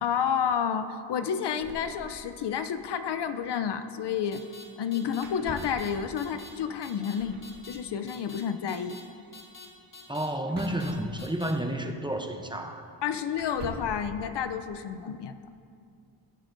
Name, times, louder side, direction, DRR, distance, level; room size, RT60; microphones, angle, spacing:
voice 1, 0.0-4.4 4.8-9.0 13.0-15.4, left 7 dB, 60° left, 10 dB, 0.7 m, -30 dB
sound 1, 1.5-2.6 2.9-3.0 3.1-3.3 5.2-5.9 7.1-7.5 10.5-11.6 12.5-12.6 13.3-14.0, right 2 dB, 55° right, 2.0 m, -44 dB
sound 2, 4.3-4.6 4.9-5.2 5.6-5.9 6.2-6.5 6.8-7.1 7.4-7.8 8.1-8.4 8.7-9.0 9.3-9.7 9.9-10.3 10.6-10.9 11.2-11.5, left 4 dB, 45° left, 1.8 m, -46 dB
voice 2, 10.1-12.8, right 1 dB, 10° right, 4 dB, 0.7 m, -31 dB
19.5 x 7.7 x 2.6 m, 2.4 s
cardioid pair, 85°, 46 cm